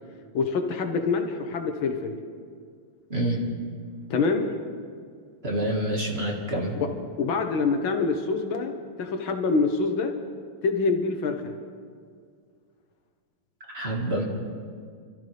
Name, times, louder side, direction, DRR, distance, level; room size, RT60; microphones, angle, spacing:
voice 1, 0.3-2.2 4.1-4.5 7.2-8.7 9.0-10.2 10.6-11.6, left 4 dB, 70° left, 5 dB, 1.8 m, -25 dB
voice 2, 5.4-6.8 13.7-14.2, right 1 dB, 30° right, -2 dB, 1.9 m, -27 dB
28.0 x 13.0 x 3.4 m, 2.1 s
omnidirectional pair, 2.4 m